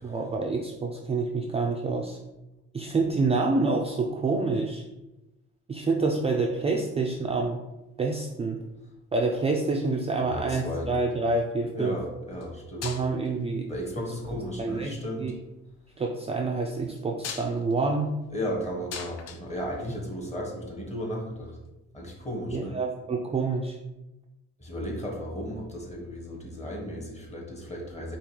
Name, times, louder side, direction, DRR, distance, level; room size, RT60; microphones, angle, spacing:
voice 1, 0.0-2.2 2.7-4.9 5.7-7.6 8.0-8.6 9.1-12.0 12.8-13.7 14.6-15.3 16.0-18.1 22.5-23.8, right 3 dB, 20° right, 1 dB, 0.3 m, -27 dB
voice 2, 10.2-10.9 11.7-12.9 13.7-15.3 18.3-21.6 21.9-22.7 24.6-28.2, equal, 20° left, -1 dB, 1.3 m, -35 dB
sound 1, 10.9-11.2 12.3-12.5 12.8-13.4 14.4-14.8 16.9-20.3 21.7-21.8, left 6 dB, 55° left, 0.5 m, -41 dB
4.9 x 2.4 x 3.1 m, 0.98 s
cardioid pair, 90°, 30 cm